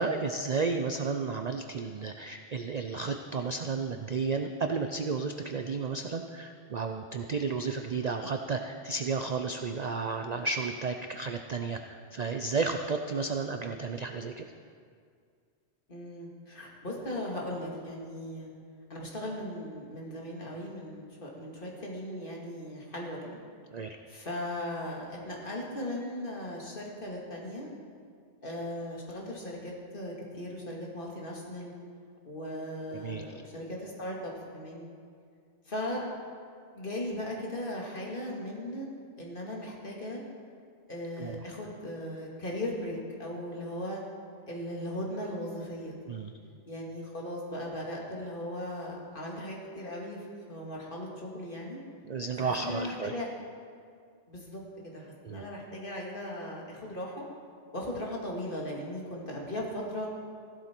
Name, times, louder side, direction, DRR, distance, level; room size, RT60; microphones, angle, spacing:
voice 1, 0.0-14.5 23.7-24.0 32.9-33.3 41.2-41.4 46.1-46.3 52.0-53.1 55.2-55.5, right 4 dB, 50° right, 6 dB, 0.5 m, -32 dB
voice 2, 15.9-18.5 18.9-23.2 24.1-27.7 28.4-31.7 32.2-34.9 35.7-36.0 36.7-38.9 39.2-40.2 40.9-44.0 44.5-45.9 46.7-51.8 52.4-53.3 54.3-57.2 57.7-60.1, left 1 dB, 45° left, -2 dB, 2.3 m, -38 dB
15.5 x 12.0 x 4.5 m, 2.2 s
omnidirectional pair, 1.2 m